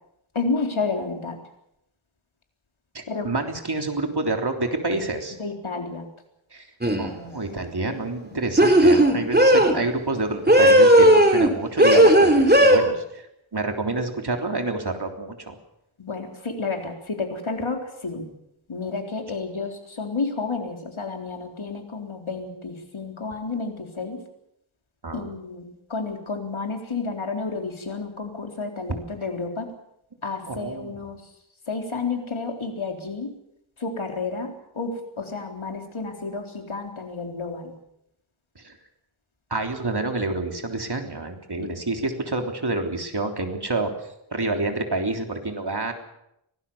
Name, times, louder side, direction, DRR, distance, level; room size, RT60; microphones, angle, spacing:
voice 1, 0.3-1.4 3.1-3.3 5.4-6.1 7.8-7.9 8.2-8.4 9.6-9.8 16.0-18.3 18.7-24.2 25.1-29.7 30.2-31.3 31.7-33.3 33.8-37.8 41.6-41.7, left 4 dB, 85° left, 3 dB, 4.0 m, -31 dB
voice 2, 2.9-5.4 6.5-6.7 7.0-13.3 13.5-15.6 25.0-25.3 30.5-30.9 38.6-38.7 39.5-43.9 44.3-45.9, right 2 dB, 55° right, 4 dB, 3.5 m, -28 dB
sound 1, 6.8-7.1 8.6-9.8 10.5-11.5 11.8-12.8, right 1 dB, 20° right, 3.4 m, -15 dB
24.5 x 18.5 x 7.2 m, 0.80 s
wide cardioid pair, 65°, 47 cm